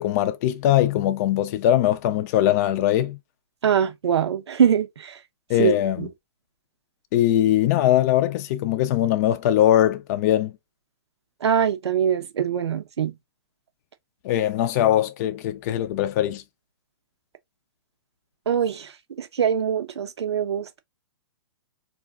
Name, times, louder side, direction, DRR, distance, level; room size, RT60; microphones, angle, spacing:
voice 1, 0.0-3.2 5.5-6.1 7.1-10.5 14.2-16.4, left 12 dB, 40° left, 0.4 m, -21 dB
voice 2, 3.6-5.2 5.6-5.7 6.0-6.1 11.4-13.1 18.5-18.9 19.2-20.8, right 8 dB, 85° right, 0.7 m, -23 dB
2.4 x 2.3 x 3.5 m
hypercardioid pair, 140°, 14 cm